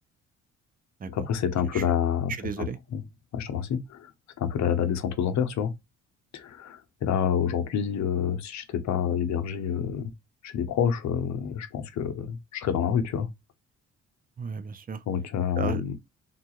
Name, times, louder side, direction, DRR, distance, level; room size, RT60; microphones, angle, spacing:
voice 1, 1.1-3.0 3.3-4.1 4.4-5.7 6.3-10.1 10.4-13.3 15.1-15.9, left 8 dB, 65° left, 0.8 m, -28 dB
voice 2, 2.4-2.8 14.4-15.0 15.6-15.9, right 6 dB, 30° right, 0.5 m, -34 dB
3.7 x 2.4 x 2.8 m
cardioid pair, 90°, 30 cm